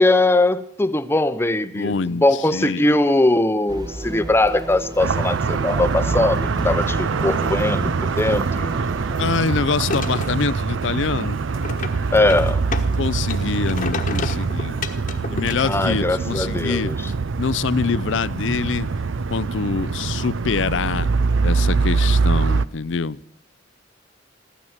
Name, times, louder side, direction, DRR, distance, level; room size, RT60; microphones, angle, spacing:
voice 1, 0.0-8.7 12.1-12.6 15.6-17.0, left 2 dB, 15° left, 0.7 m, -20 dB
voice 2, 1.7-3.0 9.2-11.4 13.0-14.8 15.3-16.9 17.4-18.9 19.3-21.1 21.4-23.2, left 5 dB, 70° left, 0.5 m, -25 dB
sound 1, 3.7-9.5, right 1 dB, 20° right, 0.9 m, -33 dB
sound 2, 5.0-22.6, right 4 dB, 80° right, 0.5 m, -23 dB
sound 3, 9.8-10.4 11.5-13.0 13.2-16.2, left 4 dB, 45° left, 1.2 m, -31 dB
15.5 x 12.5 x 7.3 m
head